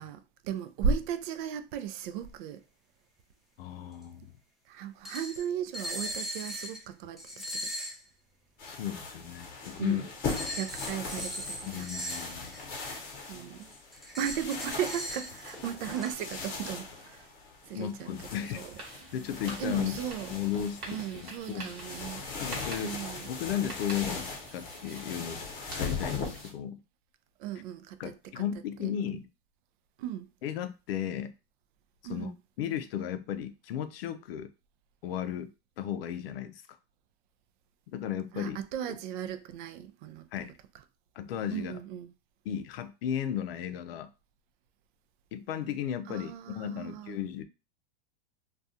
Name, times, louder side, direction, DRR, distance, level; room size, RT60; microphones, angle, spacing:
voice 1, 0.0-2.6 4.7-7.2 7.5-7.7 9.8-10.1 10.5-11.9 13.3-13.7 14.2-17.3 17.6-18.1 18.5-18.7 19.6-20.4 20.9-22.2 22.8-23.3 27.4-28.4 28.8-28.9 30.0-30.3 32.0-32.3 38.3-40.3 41.5-42.1 46.1-47.2, right 8 dB, 55° right, 0.5 m, -36 dB
voice 2, 3.6-4.3 8.7-10.0 11.7-12.5 17.7-18.6 19.1-20.0 20.3-21.7 22.4-23.0 23.3-26.8 28.0-29.3 30.4-31.3 32.1-32.3 32.6-34.5 35.0-35.5 35.8-36.6 37.9-38.6 38.8-39.0 40.3-40.5 41.2-41.7 42.5-44.1 45.3-47.4, left 10 dB, 80° left, 0.5 m, -35 dB
sound 1, 4.0-4.1 5.1-5.5 5.7-6.8 7.2-8.0 10.3-13.1 13.6-16.1, equal, ahead, 0.4 m, -39 dB
sound 2, 8.6-26.5, left 4 dB, 30° left, 0.9 m, -40 dB
sound 3, 18.4-26.5, right 2 dB, 30° right, 1.1 m, -47 dB
2.3 x 2.3 x 2.7 m
supercardioid pair, 130°, 29 cm